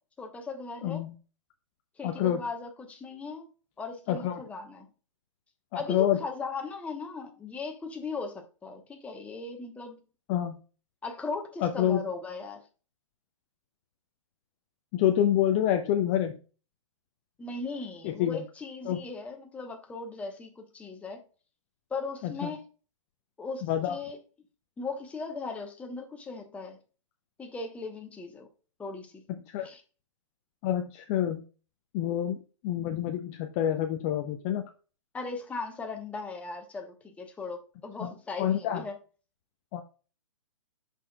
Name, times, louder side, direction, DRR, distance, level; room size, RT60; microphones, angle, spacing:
voice 1, 0.2-1.0 2.0-3.5 3.8-4.9 5.7-10.0 11.0-12.6 17.4-21.2 21.9-22.6 23.4-24.2 24.8-26.8 27.4-28.5 28.8-29.2 29.6-29.8 35.1-38.9, left 4 dB, 10° left, 1.0 m, -38 dB
voice 2, 0.8-1.1 2.0-2.4 4.1-4.4 5.9-6.2 10.3-10.6 11.6-12.0 14.9-16.4 18.0-18.4 18.9-19.0 22.2-22.5 23.6-24.0 29.5-29.7 30.6-31.4 31.9-34.6 38.0-38.1 38.4-38.8 39.7-39.8, left 11 dB, 25° left, 0.6 m, -27 dB
11.0 x 4.3 x 2.3 m
figure-of-eight pair, 125°, 17 cm